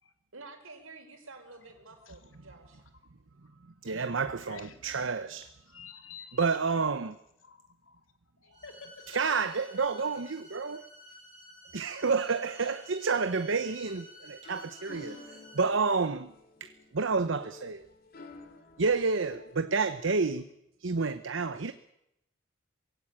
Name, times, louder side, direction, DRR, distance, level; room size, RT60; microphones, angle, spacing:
voice 1, 0.3-2.8 5.6-5.8 8.4-8.6, right 3 dB, 85° right, 4.6 m, -50 dB
voice 2, 2.5-2.9 3.8-5.0 5.4-6.6 7.4-8.0 8.4-9.3, left 6 dB, 75° left, 2.4 m, -51 dB
voice 3, 3.8-5.5 6.4-7.2 9.1-10.8 11.7-16.3 16.6-17.8 18.8-20.5 20.8-21.7, right 4 dB, 65° right, 0.8 m, -29 dB
sound 1, 8.5-15.7, left 1 dB, 20° left, 5.7 m, -52 dB
sound 2, 14.1-19.6, left 3 dB, 45° left, 2.5 m, -51 dB
22.0 x 16.5 x 8.8 m
head